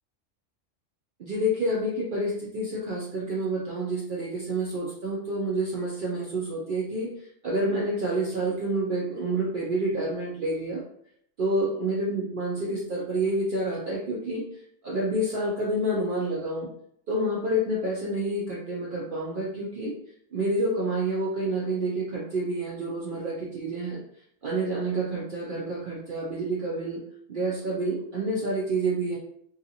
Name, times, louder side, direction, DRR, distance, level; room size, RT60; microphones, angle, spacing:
voice 1, 1.2-10.8 11.4-14.4 14.8-16.7 17.1-19.9 20.3-24.0 24.4-27.0 27.3-29.2, right 1 dB, 60° right, -4 dB, 0.5 m, -28 dB
2.7 x 2.3 x 2.7 m, 0.68 s
omnidirectional pair, 1.3 m